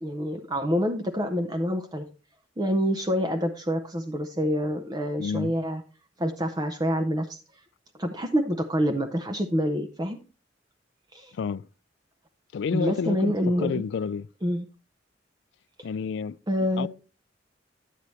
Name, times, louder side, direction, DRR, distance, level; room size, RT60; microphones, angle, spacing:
voice 1, 0.0-2.1 2.6-5.8 6.2-7.4 8.0-10.2 11.1-11.3 12.7-13.8 14.4-14.6 16.5-16.9, equal, 20° right, 0.6 m, -27 dB
voice 2, 5.2-5.5 11.3-11.7 12.5-14.3 15.8-16.4 16.8-16.9, left 6 dB, 65° left, 0.3 m, -30 dB
10.0 x 8.3 x 3.1 m
head